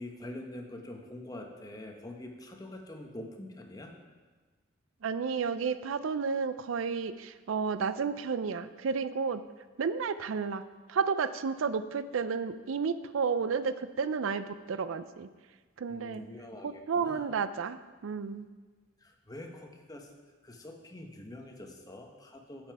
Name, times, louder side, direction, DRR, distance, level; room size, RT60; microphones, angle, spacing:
voice 1, 0.0-3.9 15.9-17.3 19.0-20.1 20.4-22.7, left 1 dB, 20° left, 2 dB, 1.0 m, -45 dB
voice 2, 5.0-9.4 9.8-10.6 10.9-15.3 15.8-16.2 16.6-18.5, right 5 dB, 90° right, 13 dB, 0.4 m, -32 dB
9.7 x 7.8 x 4.7 m, 1.4 s
head